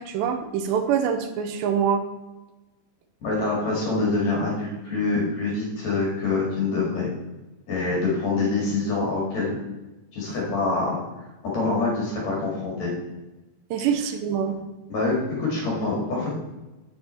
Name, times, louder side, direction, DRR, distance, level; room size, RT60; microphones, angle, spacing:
voice 1, 0.0-2.0 13.7-14.6, right 7 dB, 80° right, 7 dB, 3.0 m, -24 dB
voice 2, 3.2-7.1 7.7-9.6 10.1-11.0 11.4-12.9 14.9-16.3, left 3 dB, 50° left, -3 dB, 2.7 m, -25 dB
8.4 x 7.0 x 4.3 m, 1.1 s
omnidirectional pair, 5.0 m